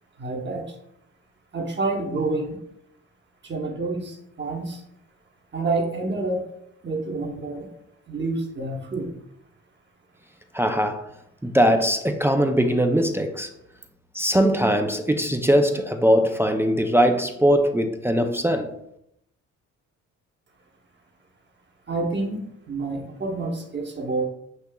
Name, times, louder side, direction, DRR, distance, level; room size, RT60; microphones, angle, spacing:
voice 1, 0.2-0.7 1.5-2.6 3.4-4.8 5.5-6.5 6.8-7.7 8.1-9.1 21.9-22.4 22.7-24.2, right 3 dB, 35° right, 1.1 m, -28 dB
voice 2, 10.5-11.0 11.4-13.5 14.1-18.7, equal, 10° right, 0.4 m, -21 dB
8.0 x 2.8 x 2.3 m
cardioid pair, 90°, 30 cm